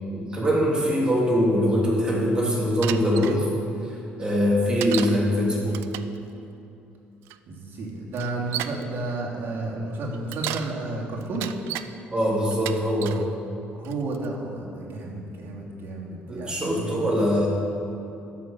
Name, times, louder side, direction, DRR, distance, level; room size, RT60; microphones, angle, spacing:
voice 1, 0.1-3.5 3.8-5.8 12.1-13.2 16.3-17.5, equal, 20° right, -3 dB, 3.2 m, -23 dB
Bicycle, 2.8-3.4 4.8-5.2 5.7-6.2 7.3-7.4 8.1-8.8 10.1-10.7 11.2-11.9 12.5-13.2 13.8-14.3, right 13 dB, 85° right, 0.4 m, -33 dB
voice 2, 7.5-11.4 13.8-16.9, right 2 dB, 55° right, -4 dB, 2.9 m, -32 dB
13.0 x 6.3 x 8.2 m, 2.8 s
cardioid pair, 95°, 4 cm